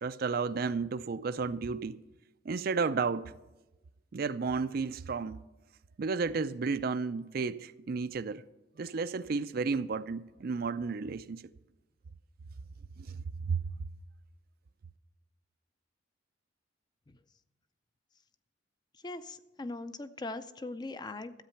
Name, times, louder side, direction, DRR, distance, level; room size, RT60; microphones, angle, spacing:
voice 1, 0.0-2.0 2.5-3.3 4.1-5.4 6.0-8.4 8.8-11.4 13.1-13.2 13.5-13.6, right 4 dB, 50° right, 0.4 m, -32 dB
voice 2, 19.0-21.3, left 2 dB, 20° left, 0.4 m, -40 dB
13.0 x 8.3 x 5.8 m
head